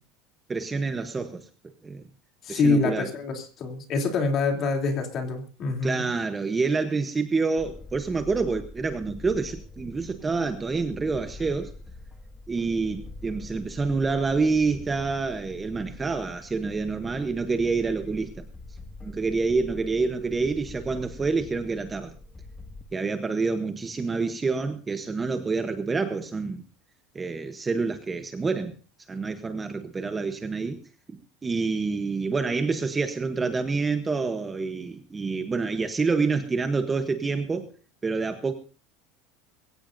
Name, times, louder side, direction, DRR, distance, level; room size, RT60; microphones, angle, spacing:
voice 1, 0.5-1.5 1.8-2.0 2.5-3.1 5.8-11.7 12.5-18.4 19.0-22.1 22.9-26.6 27.1-28.8 29.1-30.8 31.1-37.7 38.0-38.5, right 4 dB, 10° right, 0.9 m, -27 dB
voice 2, 2.4-6.1, left 3 dB, 30° left, 3.0 m, -26 dB
sound 1, 7.6-22.8, left 2 dB, 10° left, 1.8 m, -44 dB
22.5 x 16.5 x 2.6 m
supercardioid pair, 170°, 0 cm